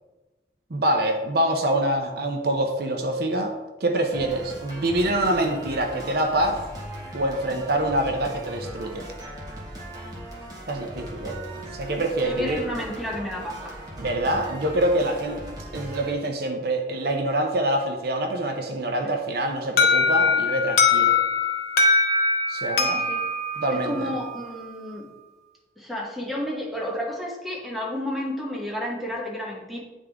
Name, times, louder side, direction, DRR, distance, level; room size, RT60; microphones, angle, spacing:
voice 1, 0.7-3.5 3.8-6.6 7.1-9.1 10.7-11.4 11.7-12.7 14.0-15.4 15.7-21.2 22.5-23.0 23.6-24.2, right 1 dB, 60° right, 4 dB, 0.7 m, -25 dB
sound 1, 4.1-16.1, right 1 dB, 20° right, 1.3 m, -38 dB
voice 2, 12.2-13.8 19.0-19.2 22.8-23.3 23.7-25.1 25.8-29.8, left 1 dB, ahead, -3 dB, 1.1 m, -31 dB
Alarm, 19.8-24.6, left 4 dB, 60° left, 0.8 m, -22 dB
9.0 x 3.6 x 3.5 m, 1.1 s
head